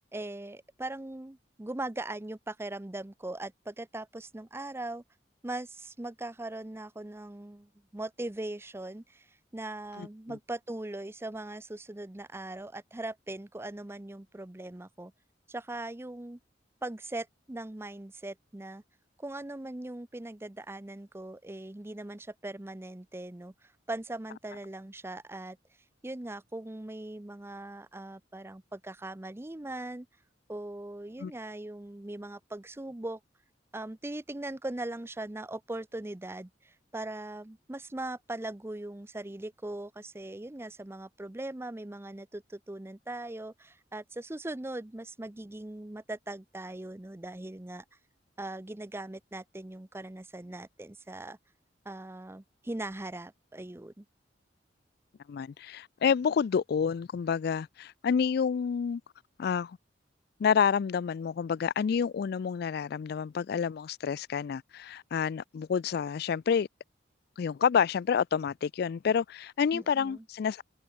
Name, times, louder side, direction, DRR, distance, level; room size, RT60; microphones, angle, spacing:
voice 1, 0.1-5.0 5.4-15.1 15.5-16.4 16.8-18.8 19.2-25.6 26.0-30.1 30.5-33.2 33.7-47.8 48.4-51.4 51.8-54.0 69.7-70.2, right 2 dB, 15° right, 0.6 m, -40 dB
voice 2, 55.3-59.0 59.4-59.8 60.4-66.7 67.4-70.6, left 7 dB, 60° left, 0.3 m, -28 dB
head